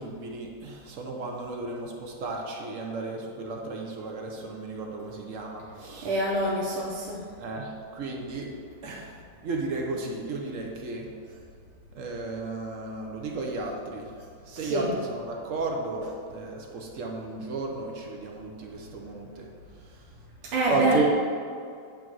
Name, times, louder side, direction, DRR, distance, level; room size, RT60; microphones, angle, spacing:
voice 1, 0.0-6.1 7.4-8.5 8.8-11.1 11.9-14.1 14.5-19.5 19.9-20.0 20.7-21.0, right 3 dB, 65° right, 0 dB, 0.7 m, -34 dB
voice 2, 6.0-7.2 14.6-14.9 20.5-21.0, right 1 dB, 90° right, -4 dB, 1.8 m, -26 dB
8.9 x 3.5 x 6.1 m, 2.3 s
omnidirectional pair, 2.3 m